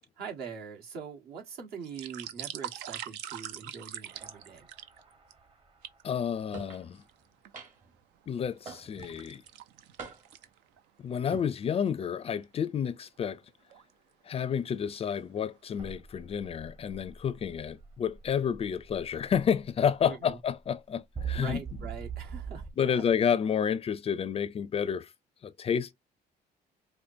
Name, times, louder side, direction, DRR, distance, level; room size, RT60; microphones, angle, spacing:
voice 1, 0.2-4.7 20.0-20.4 21.3-23.0, right 6 dB, 70° right, 1.7 m, -43 dB
sound 1, 1.7-5.3 5.8-6.0 6.7-7.5 8.0-10.9 11.2-11.3 11.8-11.9 12.3-12.6 13.4-13.9 14.4-14.7 15.0-15.6 15.9-16.0, right 11 dB, 90° right, 0.6 m, -43 dB
sound 2, 4.1-6.6 9.2-9.3 15.8-22.7, right 6 dB, 30° right, 1.0 m, -43 dB
voice 2, 6.0-7.0 8.3-9.4 11.0-13.4 14.2-21.6 22.8-25.1 25.4-25.9, left 8 dB, 35° left, 0.4 m, -30 dB
sound 3, 6.5-6.8 7.5-8.0 8.7-9.2 10.0-10.5 11.2-11.5, right 4 dB, 50° right, 2.0 m, -44 dB
4.9 x 2.2 x 2.7 m
cardioid pair, 110°, 17 cm